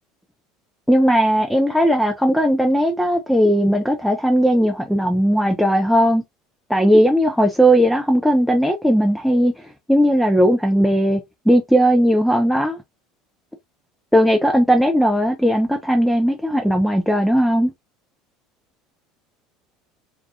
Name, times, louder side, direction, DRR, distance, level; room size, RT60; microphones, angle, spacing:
voice 1, 0.9-6.2 6.7-12.8 14.1-17.7, equal, ahead, 0.4 m, -17 dB
2.4 x 2.2 x 2.6 m
hypercardioid pair, 70°, 0 cm